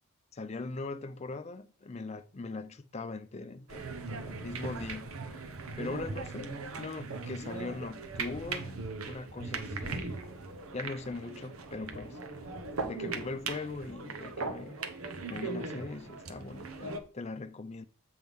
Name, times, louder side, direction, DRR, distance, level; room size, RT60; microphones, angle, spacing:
voice 1, 0.3-5.4 5.7-10.2 10.7-12.2 12.8-14.8 15.3-17.8, left 3 dB, 30° left, 0.4 m, -41 dB
sound 1, 3.7-17.0, right 3 dB, 80° right, 1.0 m, -39 dB
7.8 x 5.4 x 3.6 m
head